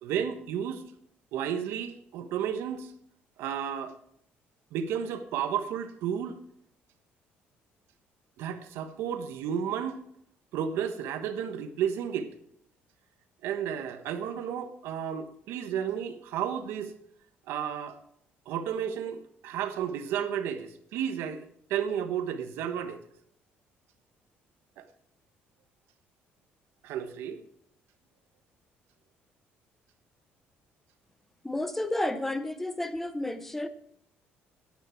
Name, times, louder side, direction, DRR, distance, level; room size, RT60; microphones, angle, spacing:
voice 1, 0.0-0.8 1.3-2.9 3.4-3.9 4.7-6.4 8.4-10.0 10.5-12.3 13.4-16.9 17.5-18.0 18.5-23.0 24.8-24.9 26.8-27.4, right 8 dB, 80° right, 9 dB, 1.2 m, -32 dB
voice 2, 31.4-33.7, left 1 dB, 5° left, 11 dB, 0.5 m, -31 dB
12.0 x 9.5 x 4.5 m, 0.70 s
cardioid pair, 170°, 4 cm